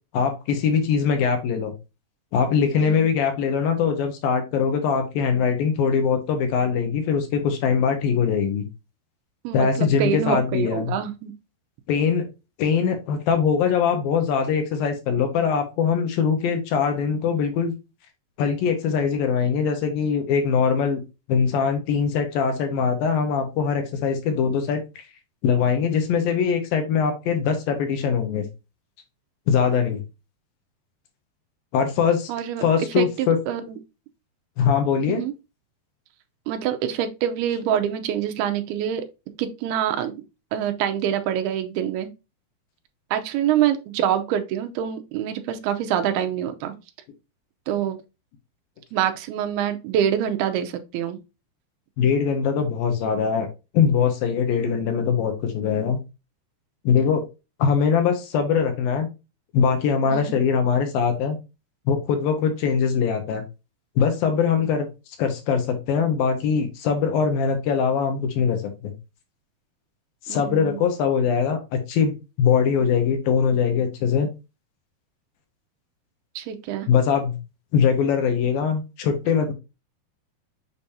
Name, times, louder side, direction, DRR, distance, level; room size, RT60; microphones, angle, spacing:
voice 1, 0.1-1.7 2.3-8.7 9.5-10.9 11.9-12.3 12.6-17.7 18.4-21.0 21.3-25.0 25.4-28.5 29.5-30.0 31.7-32.3 32.6-33.4 34.6-35.2 52.0-53.5 53.7-56.0 56.8-57.2 57.6-59.1 59.5-61.4 61.9-63.4 64.0-64.9 65.2-68.9 70.3-74.3 76.9-77.4 77.7-79.5, left 6 dB, 75° left, 2.6 m, -22 dB
voice 2, 9.4-11.3 32.3-32.7 33.0-33.8 35.1-35.3 36.5-39.1 39.4-40.2 40.5-42.1 43.1-46.7 47.7-48.0 48.9-51.2 60.1-60.4 70.3-70.8 76.4-76.9, right 10 dB, 80° right, 2.8 m, -25 dB
7.1 x 5.1 x 2.7 m
omnidirectional pair, 4.6 m